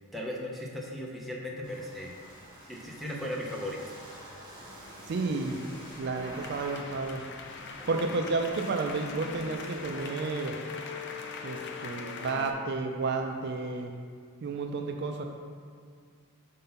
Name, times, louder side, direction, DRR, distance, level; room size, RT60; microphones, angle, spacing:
voice 1, 0.1-2.1 2.6-3.8 7.8-8.1, left 1 dB, ahead, -3 dB, 0.7 m, -37 dB
sound 1, 1.6-9.9, equal, 20° right, 1.1 m, -49 dB
sound 2, 4.4-12.5, left 5 dB, 50° left, 0.4 m, -42 dB
voice 2, 5.1-5.7 5.9-7.2 7.9-10.6 11.4-13.9 14.4-15.2, right 3 dB, 50° right, 3 dB, 0.4 m, -31 dB
5.7 x 3.8 x 5.3 m, 2.1 s
head